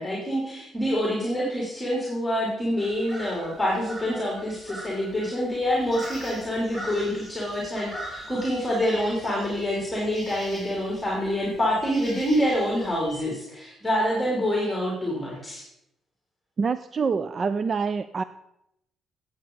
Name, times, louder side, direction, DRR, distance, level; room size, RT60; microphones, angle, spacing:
voice 1, 0.0-15.6, equal, 10° left, -4 dB, 3.3 m, -26 dB
sound 1, 2.8-13.2, equal, 20° right, 5.0 m, -42 dB
voice 2, 16.6-18.2, right 5 dB, 45° right, 13 dB, 0.4 m, -26 dB
14.0 x 8.3 x 3.9 m, 0.82 s
cardioid pair, 90°, 0 cm